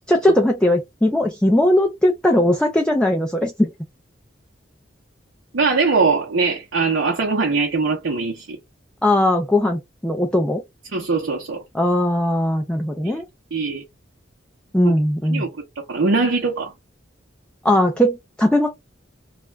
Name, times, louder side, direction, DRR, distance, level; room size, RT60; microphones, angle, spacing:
voice 1, 0.1-3.7 9.0-10.6 11.7-13.2 14.7-15.4 17.6-18.7, left 1 dB, 5° left, 0.4 m, -19 dB
voice 2, 5.5-8.6 10.9-11.6 13.1-13.2 13.5-13.8 14.8-14.9 15.3-15.5 15.9-16.7, right 4 dB, 85° right, 0.7 m, -21 dB
2.4 x 2.2 x 3.1 m
head